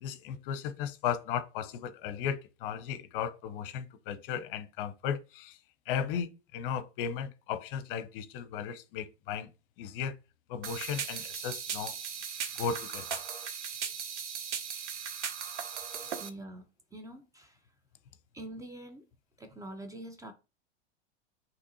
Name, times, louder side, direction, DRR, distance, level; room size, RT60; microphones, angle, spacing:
voice 1, 0.0-5.6 5.9-9.5 9.8-10.2 10.5-12.0 12.6-13.1, left 8 dB, 50° left, 0.7 m, -35 dB
sound 1, 10.6-16.3, right 7 dB, 85° right, 0.7 m, -38 dB
voice 2, 16.2-16.7 16.9-17.7 18.3-19.1 19.4-20.3, right 1 dB, 10° right, 0.5 m, -45 dB
6.0 x 2.9 x 2.7 m
hypercardioid pair, 95°, 34 cm